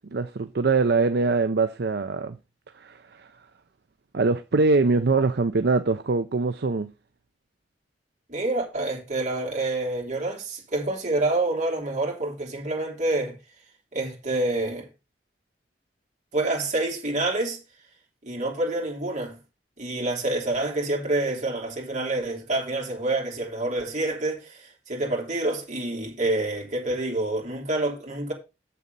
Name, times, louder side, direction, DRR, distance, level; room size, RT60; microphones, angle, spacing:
voice 1, 0.1-2.4 2.8-3.3 4.1-6.9, right 3 dB, 65° right, 0.6 m, -23 dB
voice 2, 8.3-13.4 13.9-14.9 16.3-17.6 18.2-19.4 19.8-28.3, right 2 dB, 45° right, 3.5 m, -27 dB
7.3 x 6.8 x 5.3 m
head